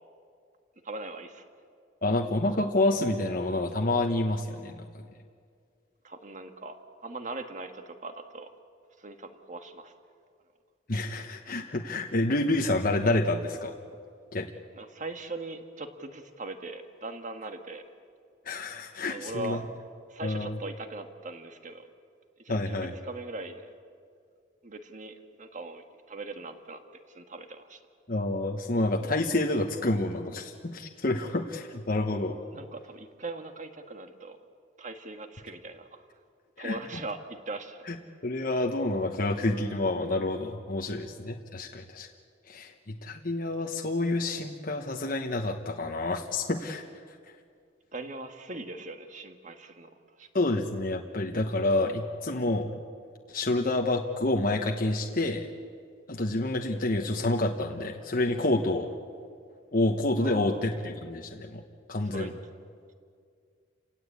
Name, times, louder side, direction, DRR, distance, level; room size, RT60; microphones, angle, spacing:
voice 1, 0.8-1.5 6.0-6.7 7.0-8.5 9.0-9.9 14.7-17.8 19.1-19.7 20.1-21.9 22.4-23.7 24.6-26.8 27.1-27.8 32.5-34.4 34.8-36.1 36.6-37.8 47.9-49.9 50.2-50.3 60.2-60.6 62.0-62.3, right 2 dB, 40° right, 6 dB, 1.6 m, -40 dB
voice 2, 2.0-5.0 10.9-13.7 14.3-14.5 18.4-19.6 20.2-20.6 22.5-22.9 28.1-32.4 36.6-36.8 37.9-38.0 38.2-42.1 42.5-46.8 50.3-52.7 53.3-55.5 56.1-58.9 59.7-61.6 61.9-62.3, left 2 dB, 50° left, 2 dB, 1.2 m, -28 dB
29.5 x 17.5 x 8.5 m, 2.2 s
head